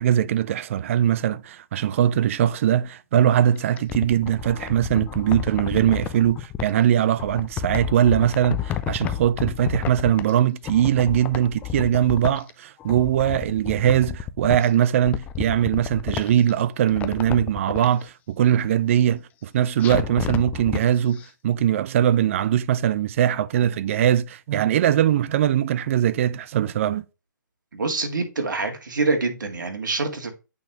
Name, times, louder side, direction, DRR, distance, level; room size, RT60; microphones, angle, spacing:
voice 1, 0.0-27.0, right 10 dB, 40° right, 0.5 m, -21 dB
sound 1, 3.6-6.7 7.2-10.4 10.6-12.5 12.8-14.7 15.0-16.5 16.9-17.9 19.8-20.8 21.2-21.3, left 10 dB, 15° left, 0.4 m, -31 dB
voice 2, 27.7-30.3, right 3 dB, 75° right, 2.3 m, -25 dB
8.5 x 4.1 x 3.1 m
hypercardioid pair, 140°, 11 cm